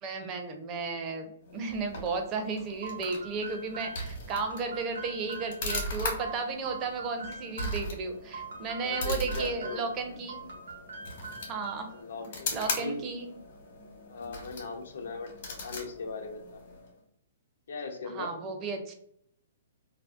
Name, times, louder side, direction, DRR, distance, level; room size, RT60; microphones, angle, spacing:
voice 1, 0.0-10.4 11.5-11.9 12.5-13.3 18.1-18.9, right 4 dB, 25° right, 4 dB, 0.4 m, -34 dB
sound 1, 1.4-17.0, left 2 dB, 60° left, 0.9 m, -39 dB
sound 2, 2.8-7.9 8.3-10.0 10.3-12.0, right 4 dB, 85° right, 0.5 m, -43 dB
voice 2, 8.8-9.8 11.9-13.0 14.1-16.6 17.7-18.3, left 3 dB, 75° left, 4 dB, 0.5 m, -39 dB
2.5 x 2.0 x 2.3 m, 0.69 s
hypercardioid pair, 150°, 0 cm